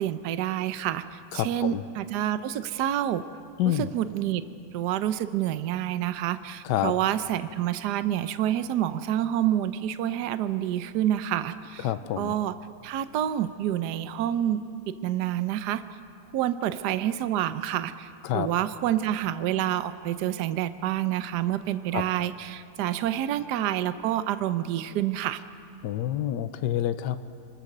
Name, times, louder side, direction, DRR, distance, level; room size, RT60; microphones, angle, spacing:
voice 1, 0.0-3.2 3.7-4.4 4.7-11.9 12.2-12.5 12.8-14.6 14.9-15.8 16.3-25.4, right 11 dB, 70° right, 12 dB, 1.2 m, -28 dB
voice 2, 1.3-1.8 3.6-3.9 6.6-6.9 11.8-12.3 18.2-18.5 21.9-22.0 25.8-27.2, left 12 dB, 75° left, 11 dB, 1.3 m, -27 dB
26.0 x 21.0 x 6.6 m, 2.4 s
omnidirectional pair, 2.0 m